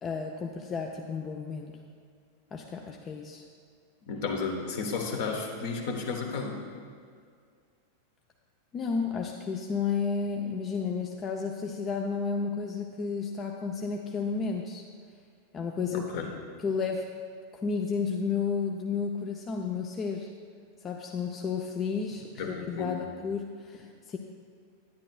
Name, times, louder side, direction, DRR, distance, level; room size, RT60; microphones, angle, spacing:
voice 1, 0.0-1.7 2.5-3.4 8.7-14.8 15.5-16.3 16.6-17.1 17.6-20.3 20.8-24.2, left 5 dB, 25° left, 2 dB, 0.5 m, -32 dB
voice 2, 4.1-6.5 15.9-16.3 22.4-23.0, left 4 dB, 50° left, 2 dB, 1.1 m, -33 dB
10.5 x 9.7 x 2.3 m, 2.1 s
figure-of-eight pair, 90°, 0 cm